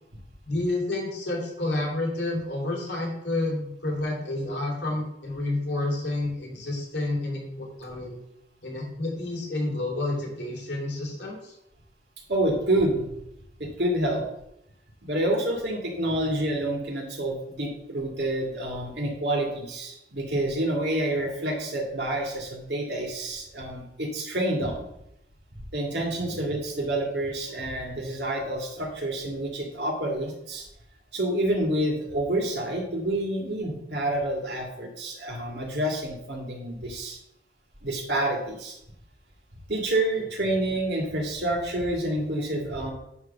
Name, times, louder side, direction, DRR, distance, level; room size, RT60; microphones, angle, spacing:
voice 1, 0.5-8.2 8.6-11.4 16.2-16.5 26.3-26.4, left 2 dB, 75° left, -2 dB, 3.0 m, -30 dB
voice 2, 12.3-13.1 13.6-14.2 15.0-24.8 25.7-30.6 31.1-37.2 37.8-38.8 39.7-42.9, right 1 dB, 70° right, 0 dB, 2.2 m, -28 dB
9.6 x 3.4 x 6.9 m, 0.81 s
head